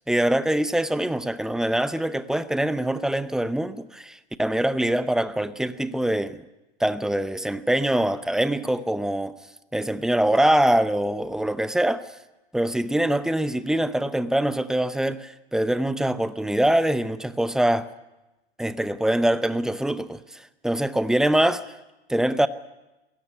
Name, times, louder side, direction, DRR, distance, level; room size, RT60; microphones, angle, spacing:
voice 1, 0.1-6.4 6.8-9.3 9.7-12.1 12.5-17.9 18.6-21.6 22.1-22.5, right 1 dB, ahead, 0.7 m, -24 dB
22.0 x 17.0 x 9.6 m
hypercardioid pair, 120°, 32 cm